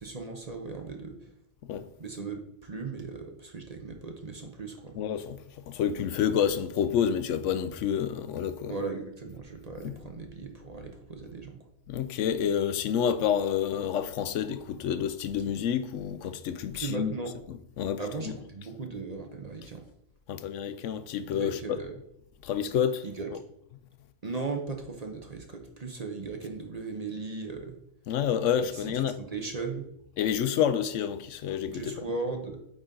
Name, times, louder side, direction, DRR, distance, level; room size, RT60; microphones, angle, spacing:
voice 1, 0.0-1.3 2.0-5.0 8.7-11.6 16.7-17.3 18.0-19.8 21.3-22.0 23.0-23.3 24.2-27.7 28.7-29.8 31.7-32.6, right 4 dB, 40° right, 0.8 m, -37 dB
voice 2, 5.0-5.4 5.7-8.8 9.8-9.9 11.9-17.1 17.5-18.0 20.3-21.8 22.4-23.0 28.1-29.2 30.2-31.9, left 8 dB, 80° left, 0.9 m, -28 dB
8.8 x 4.0 x 3.8 m
omnidirectional pair, 1.3 m